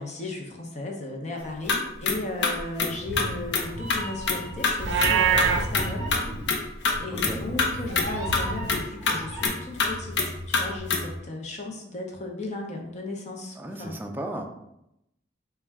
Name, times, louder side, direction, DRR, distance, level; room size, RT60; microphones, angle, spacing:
voice 1, 0.0-6.1 6.4-6.7 7.0-14.0, left 2 dB, 40° left, 1 dB, 0.7 m, -36 dB
sound 1, 1.4-1.8 2.0-2.2 2.4-3.6 3.9-4.4 4.6-5.1 5.4-7.3 7.6-7.7 8.0-8.1 8.3-11.2, left 4 dB, 80° left, 0.6 m, -25 dB
Meow, 2.8-9.5, right 1 dB, 40° right, 0.9 m, -35 dB
Livestock farm animals working animals, 4.8-5.7, right 6 dB, 80° right, 0.4 m, -22 dB
voice 2, 7.1-7.4 13.6-14.5, right 1 dB, 10° right, 4 dB, 0.3 m, -35 dB
4.1 x 2.3 x 3.5 m, 0.82 s
head